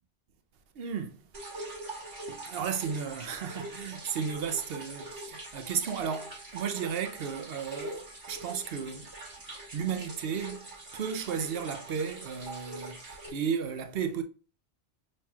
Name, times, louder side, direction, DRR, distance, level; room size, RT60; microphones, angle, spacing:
voice 1, 0.8-1.2 2.3-9.1 9.7-10.7 10.9-14.2, right 7 dB, 60° right, 0.7 m, -34 dB
sound 1, 1.3-13.3, right 2 dB, 45° right, 1.4 m, -43 dB
5.8 x 3.2 x 2.3 m
omnidirectional pair, 1.2 m